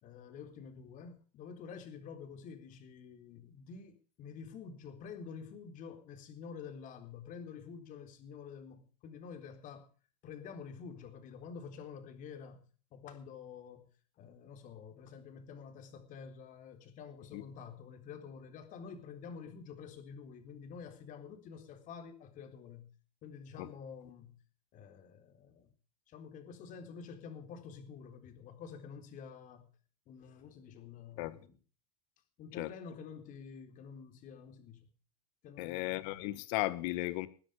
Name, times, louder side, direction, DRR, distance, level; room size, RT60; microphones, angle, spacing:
voice 1, 0.0-9.9 10.2-13.9 14.2-22.9 23.2-24.3 24.7-25.7 26.1-29.7 30.1-31.6 32.4-34.9 35.4-36.0, left 6 dB, 40° left, 3.8 m, -49 dB
voice 2, 35.6-37.3, left 18 dB, 60° left, 1.8 m, -35 dB
20.5 x 9.9 x 5.2 m
supercardioid pair, 135°, 21 cm